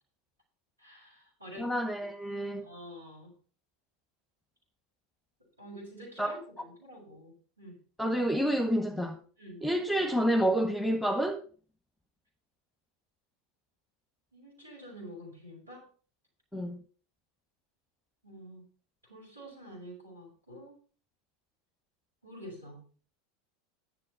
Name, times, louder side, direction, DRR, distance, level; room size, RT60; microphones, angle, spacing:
voice 1, 0.8-1.7 2.6-3.3 5.6-7.8 9.4-9.6 14.3-15.9 18.2-18.6 19.0-20.8 22.2-22.8, equal, 90° right, -6 dB, 5.8 m, -48 dB
voice 2, 1.6-2.7 6.2-6.4 8.0-9.2 9.6-11.4 16.5-16.8, equal, 5° left, 6 dB, 1.2 m, -29 dB
10.5 x 7.6 x 5.7 m, 0.41 s
figure-of-eight pair, 80°, 0 cm